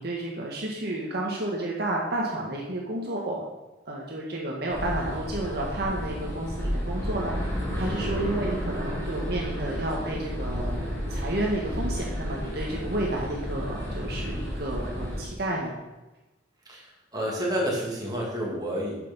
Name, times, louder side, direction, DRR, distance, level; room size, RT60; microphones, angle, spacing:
voice 1, 0.0-3.4 3.9-15.7, right 1 dB, 55° right, -2 dB, 1.5 m, -31 dB
sound 1, 4.7-15.2, equal, 15° left, 3.1 m, -32 dB
voice 2, 16.7-19.0, equal, 20° right, -3 dB, 2.5 m, -30 dB
8.4 x 6.8 x 5.5 m, 1.1 s
head